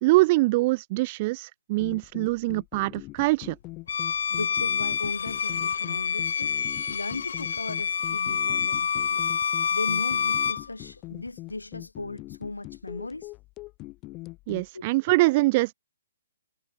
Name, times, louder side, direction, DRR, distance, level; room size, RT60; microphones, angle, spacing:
voice 1, 0.0-3.6 14.5-15.7, right 21 dB, 30° right, 0.6 m, -23 dB
sound 1, 1.8-14.7, left 21 dB, 25° left, 0.8 m, -43 dB
Bowed string instrument, 3.9-10.7, left 7 dB, 55° left, 0.3 m, -27 dB
voice 2, 4.3-6.5 6.9-9.3 9.7-13.3 14.7-14.8, left 2 dB, 80° left, 4.4 m, -37 dB
figure-of-eight pair, 130°, 0 cm